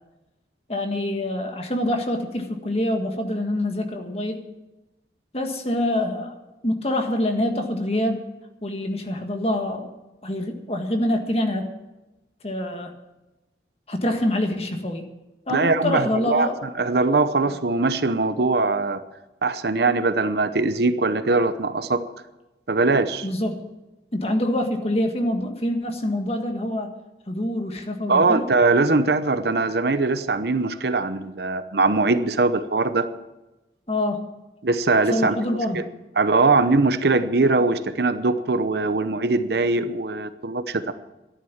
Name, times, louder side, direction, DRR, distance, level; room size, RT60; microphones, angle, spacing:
voice 1, 0.7-4.5 5.3-6.3 6.6-8.3 8.6-10.0 10.2-11.7 12.4-12.9 13.9-15.1 15.5-16.6 23.2-23.6 24.1-26.9 27.3-28.5 33.9-34.3 35.1-35.9, left 1 dB, 35° left, 4 dB, 1.6 m, -25 dB
voice 2, 15.5-16.5 16.8-19.0 19.4-22.0 22.7-23.3 28.1-33.1 34.6-35.4 35.7-35.8 36.2-40.9, right 3 dB, 60° right, 11 dB, 0.8 m, -21 dB
13.0 x 11.0 x 7.3 m, 1.0 s
head